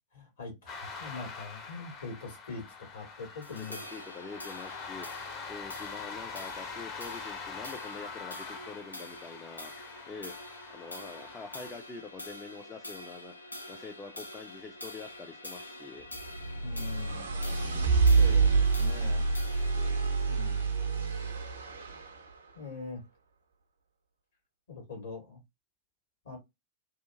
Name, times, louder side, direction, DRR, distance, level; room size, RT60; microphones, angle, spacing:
voice 1, 0.1-2.6 2.9-3.8 16.6-17.3 18.2-19.4 20.3-20.7 22.5-23.0 24.7-25.4 26.2-26.4, left 4 dB, 65° left, 1.5 m, -42 dB
sound 1, 0.7-11.7, left 5 dB, 40° left, 0.7 m, -44 dB
sound 2, 3.4-22.0, left 1 dB, 85° left, 0.4 m, -46 dB
voice 2, 3.5-5.1 5.5-9.7 10.1-10.3 10.7-13.3 13.7-16.0 19.7-20.0, left 4 dB, 20° left, 0.4 m, -45 dB
sound 3, 16.2-22.3, right 4 dB, 75° right, 0.6 m, -27 dB
2.8 x 2.4 x 2.3 m
figure-of-eight pair, 90°, 0 cm